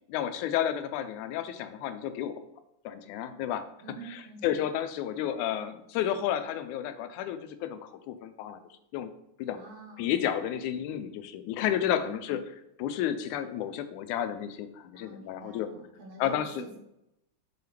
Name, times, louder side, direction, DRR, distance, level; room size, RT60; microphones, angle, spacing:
voice 1, 0.1-2.4 2.9-3.7 4.1-8.6 8.9-9.1 9.4-9.6 10.0-12.4 12.8-15.7 16.2-16.6, left 10 dB, 90° left, 10 dB, 2.0 m, -31 dB
voice 2, 3.8-4.6 9.5-10.2 12.0-12.4 14.9-16.8, right 3 dB, 65° right, 0 dB, 2.1 m, -47 dB
7.0 x 5.0 x 3.2 m, 0.82 s
omnidirectional pair, 3.4 m